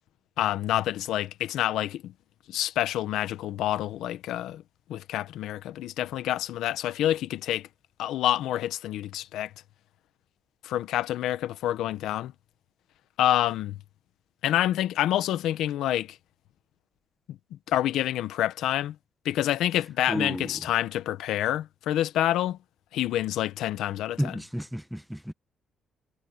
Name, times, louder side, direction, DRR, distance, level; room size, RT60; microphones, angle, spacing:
voice 1, 0.4-2.1 2.5-4.6 4.9-7.7 8.0-9.5 10.6-12.3 13.2-13.8 14.4-16.2 17.3-17.4 17.7-19.0 19.2-22.6 22.9-24.4, left 13 dB, 85° left, 1.2 m, -27 dB
voice 2, 20.1-20.5 24.2-25.3, equal, ahead, 1.1 m, -31 dB
cardioid pair, 90°, 0 cm